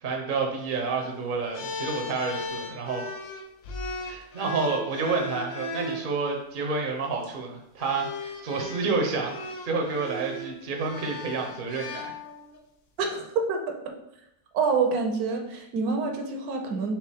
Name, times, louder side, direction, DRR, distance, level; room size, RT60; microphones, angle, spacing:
voice 1, 0.0-3.0 4.0-12.1, right 4 dB, 45° right, 2 dB, 0.7 m, -29 dB
sound 1, 1.5-6.1 7.1-7.3 7.8-12.6, left 2 dB, 70° left, 1.0 m, -37 dB
voice 2, 13.0-13.7 14.5-17.0, right 4 dB, 70° right, 3 dB, 1.2 m, -27 dB
4.5 x 3.0 x 3.5 m, 0.80 s
omnidirectional pair, 1.7 m